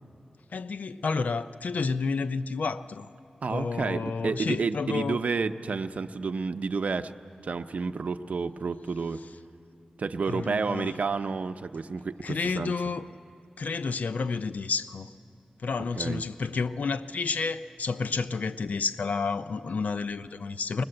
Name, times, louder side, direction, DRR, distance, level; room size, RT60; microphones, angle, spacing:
voice 1, 0.5-3.1 3.5-5.2 10.3-10.9 12.2-13.1 13.6-15.1 15.6-20.8, left 4 dB, 75° left, 12 dB, 0.5 m, -30 dB
voice 2, 3.4-7.1 7.4-9.2 10.0-12.7 16.0-16.2, right 4 dB, 70° right, 9 dB, 0.6 m, -30 dB
21.0 x 20.5 x 7.7 m, 2.5 s
wide cardioid pair, 110°, 3 cm